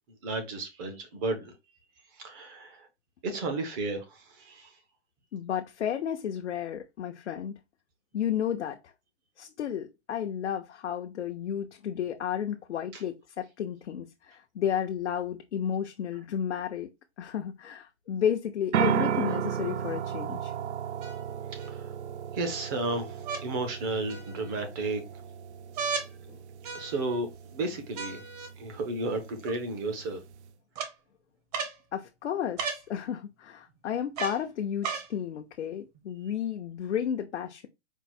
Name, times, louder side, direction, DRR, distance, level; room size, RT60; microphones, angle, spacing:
voice 1, 0.2-1.5 2.2-2.9 3.2-4.7 12.9-13.0 21.5-21.9 22.3-25.0 26.7-28.2 28.6-30.2, right 2 dB, 20° right, 0.5 m, -33 dB
voice 2, 5.3-7.5 8.1-8.9 9.4-16.9 17.2-20.5 26.3-26.4 31.9-37.7, left 9 dB, 85° left, 0.6 m, -32 dB
sound 1, 18.7-30.5, right 9 dB, 75° right, 0.5 m, -35 dB
sound 2, 19.3-19.4 21.0-21.7 23.2-23.5 24.1-24.6 25.7-26.1 26.6-27.2 28.0-28.5 29.5-29.6 30.8-30.9 31.5-31.8 32.6-32.8 34.2-34.4 34.8-35.1 35.9-36.0, right 5 dB, 35° right, 0.8 m, -35 dB
4.5 x 2.0 x 4.1 m
hypercardioid pair, 155°, 34 cm